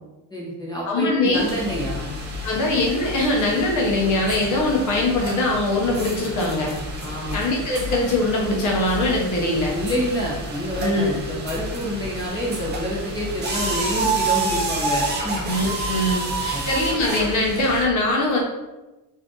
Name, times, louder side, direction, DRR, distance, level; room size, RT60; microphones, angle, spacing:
voice 1, 0.3-2.1 7.0-7.4 9.8-15.4 16.5-16.6, equal, 10° left, -6 dB, 0.9 m, -28 dB
voice 2, 0.9-1.4 2.4-6.7 7.3-9.7 10.8-11.2 15.5-18.4, left 2 dB, 45° left, -2 dB, 0.8 m, -22 dB
sound 1, 1.3-17.8, right 1 dB, 25° right, 0.5 m, -29 dB
2.6 x 2.5 x 3.6 m, 1.1 s
cardioid pair, 145°, 43 cm